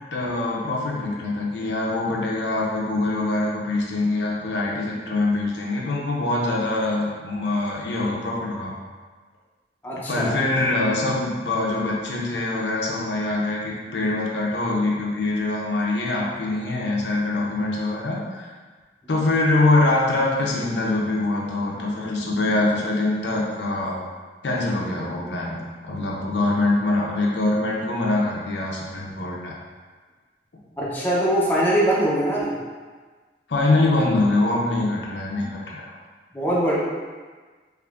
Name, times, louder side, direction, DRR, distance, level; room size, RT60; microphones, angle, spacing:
voice 1, 0.1-8.7 10.1-18.5 19.1-24.0 24.4-25.6 25.8-29.5 33.5-35.9, left 2 dB, 80° left, -3 dB, 0.6 m, -24 dB
voice 2, 9.8-10.3 30.8-32.5 36.3-36.8, right 1 dB, 10° left, -6 dB, 0.5 m, -22 dB
3.5 x 3.1 x 2.4 m, 1.4 s
head